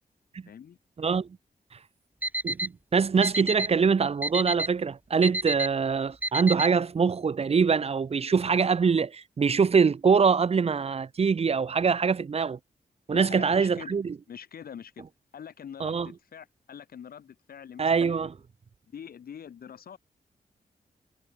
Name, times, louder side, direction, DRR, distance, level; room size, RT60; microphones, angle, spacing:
voice 1, 0.5-0.8 13.1-14.0 14.3-15.0 15.3-18.3 18.9-20.0, left 8 dB, 80° left, 4.9 m, -44 dB
voice 2, 1.0-1.3 2.4-12.6 13.1-14.1 15.8-16.1 17.8-18.3, right 5 dB, 40° right, 1.6 m, -24 dB
Alarm, 2.2-2.7 3.2-3.7 4.2-4.7 5.2-5.7 6.2-6.7, right 1 dB, 10° right, 3.2 m, -28 dB
wide cardioid pair, 145°, 15 cm